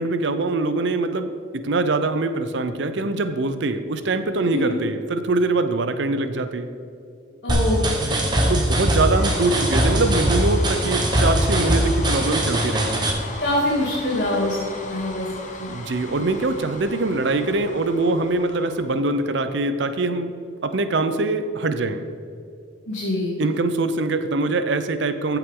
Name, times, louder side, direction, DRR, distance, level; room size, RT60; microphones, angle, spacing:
voice 1, 0.0-1.3 1.6-6.7 8.5-13.0 15.7-20.3 20.6-22.0 23.4-25.4, right 2 dB, 65° right, 10 dB, 0.5 m, -23 dB
voice 2, 4.4-4.8 7.4-7.9 13.4-14.6 14.8-15.3 15.6-15.7 22.9-23.3, left 1 dB, 60° left, -9 dB, 2.4 m, -24 dB
sound 1, 7.5-13.1, right 1 dB, 20° right, 0.9 m, -21 dB
sound 2, 9.1-19.4, left 2 dB, 35° left, 0.9 m, -37 dB
14.0 x 5.8 x 3.7 m, 2.5 s
head